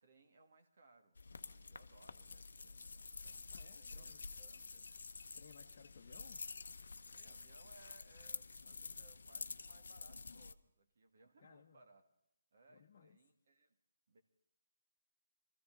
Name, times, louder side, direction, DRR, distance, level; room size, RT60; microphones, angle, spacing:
voice 1, 0.0-4.9 7.0-12.0 12.5-13.8 14.1-14.2, right 3 dB, 55° right, 4 dB, 2.1 m, -67 dB
sound 1, 1.2-10.5, left 4 dB, 75° left, 0.7 m, -50 dB
voice 2, 3.5-4.3 5.3-6.4 11.4-11.8 12.7-13.2, left 7 dB, 45° left, -1 dB, 1.0 m, -61 dB
21.0 x 14.5 x 3.9 m, 0.83 s
hypercardioid pair, 155°, 0 cm